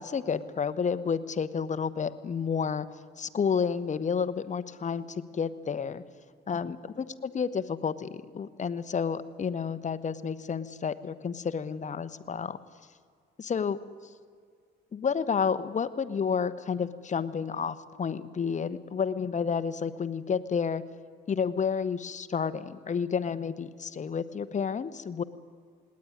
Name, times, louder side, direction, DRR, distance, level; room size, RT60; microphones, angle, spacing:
voice 1, 0.0-2.9 3.2-6.0 6.5-12.6 13.4-13.8 14.9-20.8 21.3-25.2, left 6 dB, 35° left, 12 dB, 1.0 m, -30 dB
19.5 x 18.0 x 9.7 m, 2.1 s
cardioid pair, 90°, 20 cm